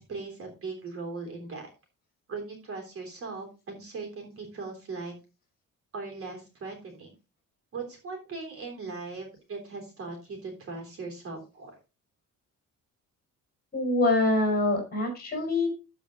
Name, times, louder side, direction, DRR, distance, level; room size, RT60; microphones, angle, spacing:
voice 1, 0.0-1.7 2.3-5.1 5.9-7.1 7.7-11.7, right 4 dB, 40° right, 3 dB, 3.6 m, -39 dB
voice 2, 13.7-15.7, left 2 dB, 30° left, 2 dB, 4.7 m, -25 dB
14.0 x 5.1 x 3.9 m, 0.29 s
cardioid pair, 170°, 33 cm